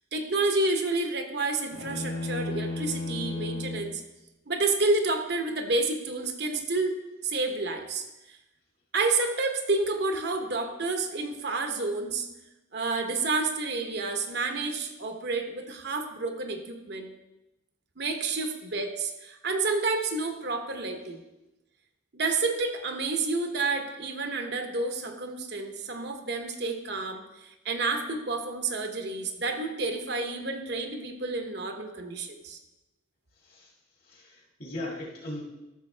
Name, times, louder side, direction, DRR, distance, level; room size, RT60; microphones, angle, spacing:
voice 1, 0.1-4.0 4.5-8.4 8.9-12.3 12.7-17.1 18.0-21.2 22.1-32.6, right 3 dB, 55° right, 5 dB, 1.0 m, -29 dB
sound 1, 1.7-4.0, left 2 dB, 90° left, 1.3 m, -33 dB
voice 2, 34.1-35.4, left 1 dB, 50° left, -1 dB, 2.1 m, -38 dB
13.0 x 6.8 x 3.3 m, 0.97 s
head